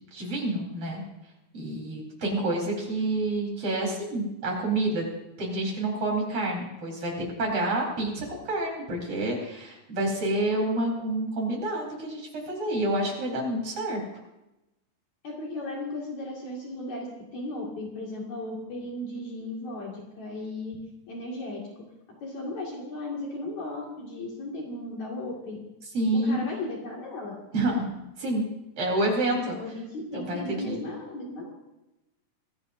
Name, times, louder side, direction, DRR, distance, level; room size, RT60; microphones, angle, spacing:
voice 1, 0.1-1.0 1.5-5.1 5.4-14.0 25.9-26.4 27.5-27.9 28.2-28.4 28.8-29.5 30.1-30.8, right 2 dB, 40° right, -2 dB, 5.3 m, -28 dB
voice 2, 15.2-20.8 21.1-21.6 22.2-25.6 26.2-27.3 29.2-31.5, left 1 dB, 60° left, -3 dB, 3.5 m, -36 dB
25.5 x 16.5 x 2.7 m, 0.95 s
omnidirectional pair, 3.9 m